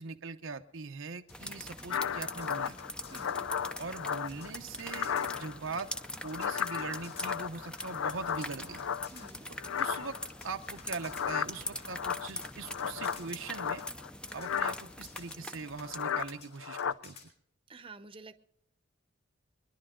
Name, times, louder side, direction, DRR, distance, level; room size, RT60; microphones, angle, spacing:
voice 1, 0.0-2.8 3.8-5.9 6.2-8.9 9.8-10.2 10.4-13.8 14.3-17.2, right 4 dB, 80° right, 6 dB, 0.9 m, -41 dB
sound 1, 1.3-17.3, left 6 dB, 60° left, 4.8 m, -55 dB
sound 2, 1.3-16.6, left 1 dB, 5° left, 0.6 m, -44 dB
sound 3, 1.9-4.5 4.8-5.7 6.0-9.3 9.6-10.3 11.0-14.1 14.4-14.8 15.8-16.3 16.6-16.9, left 8 dB, 90° left, 0.5 m, -35 dB
voice 2, 3.1-3.4 9.1-9.4 17.7-18.4, right 3 dB, 30° right, 8 dB, 0.8 m, -49 dB
23.5 x 11.0 x 3.8 m, 0.68 s
head